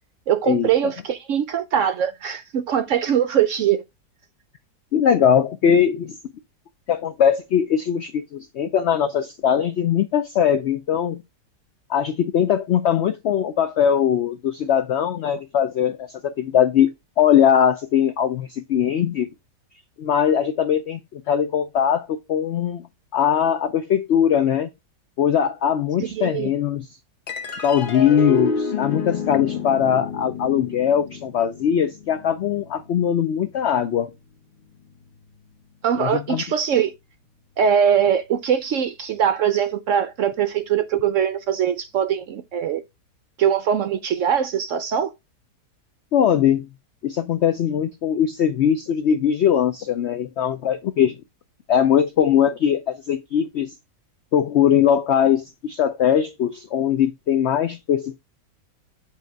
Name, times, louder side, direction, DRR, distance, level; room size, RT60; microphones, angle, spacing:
voice 1, 0.3-3.8 26.0-26.5 35.8-36.9 37.6-42.8 43.4-45.1, right 8 dB, 70° right, 0.7 m, -22 dB
voice 2, 4.9-6.2 6.9-11.2 11.9-16.9 17.2-19.3 20.0-22.9 23.1-24.7 25.2-26.9 27.6-34.1 35.9-36.4 46.1-46.7 47.0-51.2 51.7-53.7 54.3-58.2, left 9 dB, 80° left, 0.6 m, -20 dB
sound 1, 27.3-33.9, left 5 dB, 45° left, 0.8 m, -30 dB
7.6 x 3.5 x 4.5 m
omnidirectional pair, 1.8 m